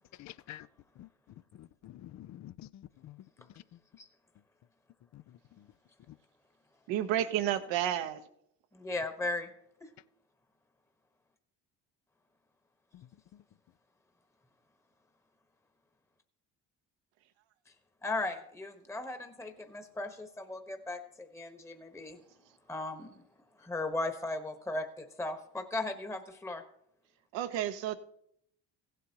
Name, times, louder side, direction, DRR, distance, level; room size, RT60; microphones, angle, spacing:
voice 1, 0.2-0.7 1.0-1.1 1.6-3.1 5.1-5.2, left 13 dB, 40° left, 0.4 m, -48 dB
voice 2, 6.9-8.2 27.3-28.0, right 11 dB, 70° right, 1.0 m, -31 dB
voice 3, 8.7-9.5 9.8-9.9 18.0-22.2 22.7-23.2 23.6-26.6, left 2 dB, 5° left, 1.2 m, -37 dB
16.0 x 8.0 x 2.9 m
hypercardioid pair, 55°, 46 cm